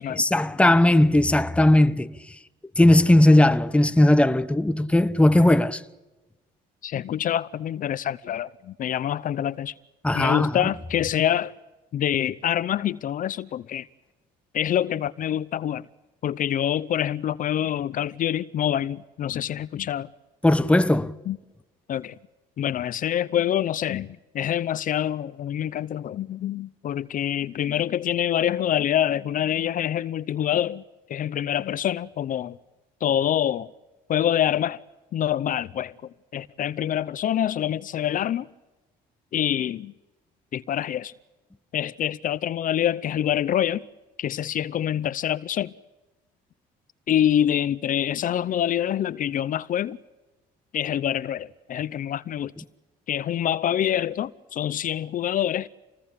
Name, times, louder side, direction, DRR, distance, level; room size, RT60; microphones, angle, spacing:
voice 1, 0.2-2.1 2.8-5.8 10.0-10.5 20.4-21.1, left 1 dB, 5° left, 1.1 m, -18 dB
voice 2, 6.8-9.7 10.1-11.5 11.9-13.9 14.5-15.9 16.2-20.1 21.3-21.4 21.9-22.1 22.6-30.8 31.1-32.6 33.0-33.7 34.1-34.8 35.1-38.5 39.3-39.9 40.5-41.1 41.7-43.8 44.2-45.7 47.1-50.0 50.7-52.5 53.1-55.7, left 10 dB, 50° left, 0.8 m, -26 dB
27.0 x 19.5 x 8.7 m
cardioid pair, 110°, 17 cm